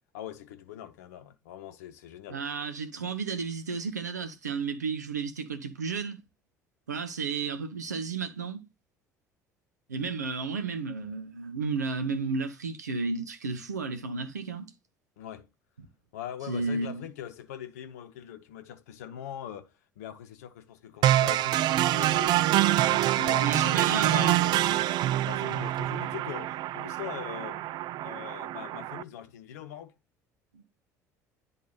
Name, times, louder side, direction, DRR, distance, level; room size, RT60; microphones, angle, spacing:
voice 1, 0.1-2.4 15.2-15.5 16.1-24.9 25.2-27.6 28.0-29.9, left 10 dB, 75° left, 0.8 m, -42 dB
voice 2, 2.3-6.2 6.9-8.6 9.9-14.7 16.5-17.1 23.4-24.4 30.5-30.6, right 4 dB, 85° right, 1.0 m, -32 dB
sound 1, 21.0-29.0, right 14 dB, 55° right, 0.4 m, -26 dB
10.5 x 3.8 x 4.0 m
figure-of-eight pair, 60°, 9 cm